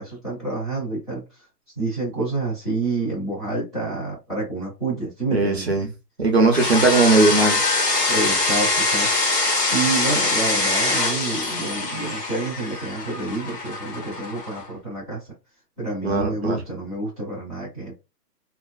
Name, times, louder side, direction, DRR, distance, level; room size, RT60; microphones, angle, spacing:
voice 1, 0.0-1.5 1.8-5.7 7.2-7.3 8.1-9.1 9.7-15.2 15.8-18.0, right 3 dB, 5° left, 0.7 m, -28 dB
voice 2, 5.3-5.9 6.2-7.6 16.0-16.6, right 3 dB, 45° right, 0.5 m, -18 dB
sound 1, 6.5-14.6, left 2 dB, 75° left, 1.2 m, -23 dB
2.4 x 2.4 x 2.2 m
hypercardioid pair, 160°, 49 cm